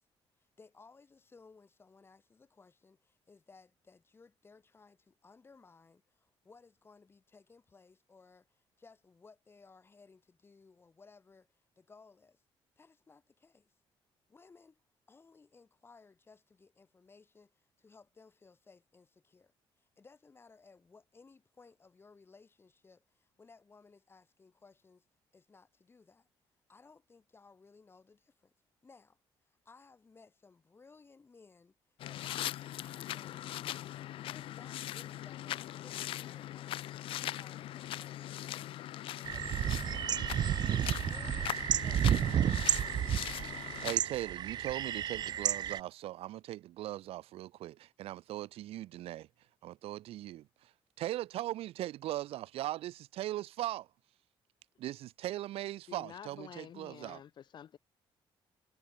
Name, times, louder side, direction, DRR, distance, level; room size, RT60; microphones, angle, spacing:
voice 1, 0.4-12.4 12.8-13.7 14.3-25.1 25.3-26.3 26.7-28.5 28.8-40.8 41.1-41.5, left 4 dB, 25° left, 7.3 m, -61 dB
sound 1, 32.0-44.0, left 13 dB, 65° left, 0.4 m, -40 dB
sound 2, 39.3-45.8, right 10 dB, 45° right, 0.4 m, -31 dB
voice 2, 43.8-49.3 49.6-50.7 51.0-53.9 54.8-57.2, right 14 dB, 85° right, 2.3 m, -39 dB
voice 3, 55.9-57.8, left 9 dB, 50° left, 2.3 m, -49 dB
cardioid pair, 140°, 10 cm